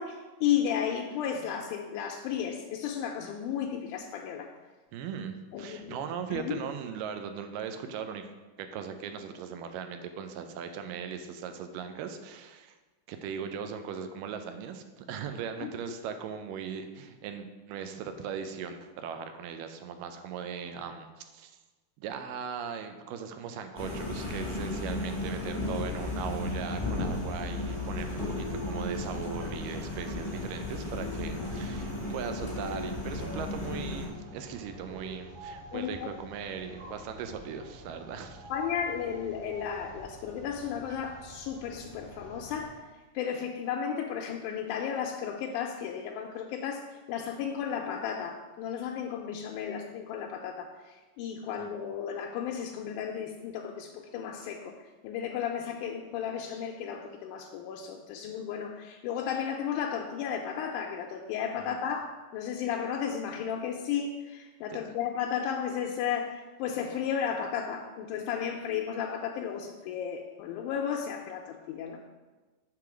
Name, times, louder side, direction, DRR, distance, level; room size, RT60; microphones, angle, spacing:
voice 1, 0.0-4.5 5.5-6.0 6.3-6.6 15.6-15.7 35.7-36.1 38.5-54.8 55.0-72.1, left 8 dB, 80° left, 1 dB, 1.9 m, -34 dB
voice 2, 4.9-8.3 8.6-12.8 13.1-21.1 21.3-21.5 22.0-38.4 51.6-51.7 61.6-61.8 64.7-64.8, right 7 dB, 85° right, 7 dB, 2.2 m, -39 dB
sound 1, 23.8-34.1, left 2 dB, 35° left, 0.4 m, -34 dB
sound 2, 23.9-42.7, right 1 dB, 55° right, 2.6 m, -48 dB
7.5 x 3.8 x 6.0 m, 1.2 s
omnidirectional pair, 3.9 m